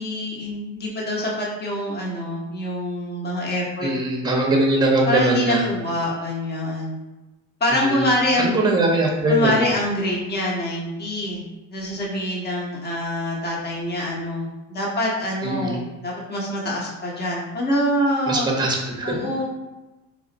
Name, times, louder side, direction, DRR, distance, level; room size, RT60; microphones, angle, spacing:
voice 1, 0.0-3.9 5.1-7.0 7.6-8.5 9.3-11.4 11.7-18.5 19.0-19.4, left 1 dB, 30° left, -4 dB, 1.1 m, -25 dB
voice 2, 3.8-5.7 7.7-8.1 8.4-9.6 15.4-15.8 18.3-19.1, right 1 dB, 15° right, 0 dB, 0.9 m, -21 dB
3.1 x 2.4 x 3.9 m, 1.1 s
supercardioid pair, 105°, 33 cm